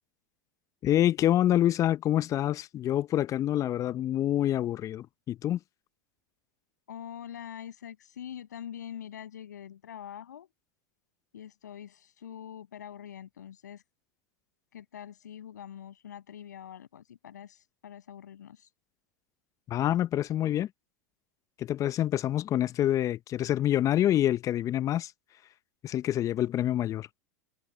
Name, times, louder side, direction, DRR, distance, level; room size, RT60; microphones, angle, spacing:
voice 1, 0.8-5.6 19.7-20.7 21.6-25.1 25.8-27.1, left 12 dB, 35° left, 1.0 m, -26 dB
voice 2, 6.9-10.5 11.3-13.8 14.7-18.7, left 9 dB, 75° left, 7.7 m, -44 dB
hypercardioid pair, 90°, 9 cm